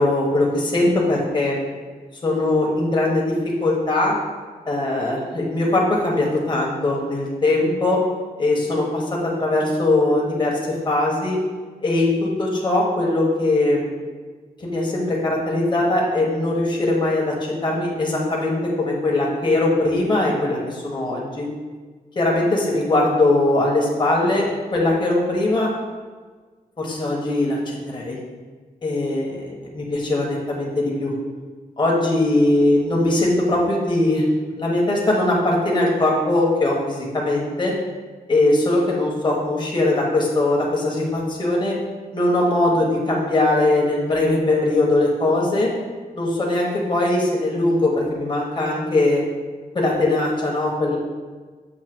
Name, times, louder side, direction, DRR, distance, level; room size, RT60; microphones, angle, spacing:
voice 1, 0.0-1.6 2.2-4.1 4.7-8.0 8.4-11.4 11.8-14.1 14.6-17.3 17.6-21.5 22.1-25.7 26.8-28.2 28.8-31.1 31.8-34.3 34.6-37.7 38.3-41.8 42.1-45.7 46.1-49.2 49.7-51.0, left 2 dB, 30° left, -3 dB, 1.2 m, -20 dB
7.2 x 2.9 x 6.0 m, 1.4 s
wide cardioid pair, 140°, 16 cm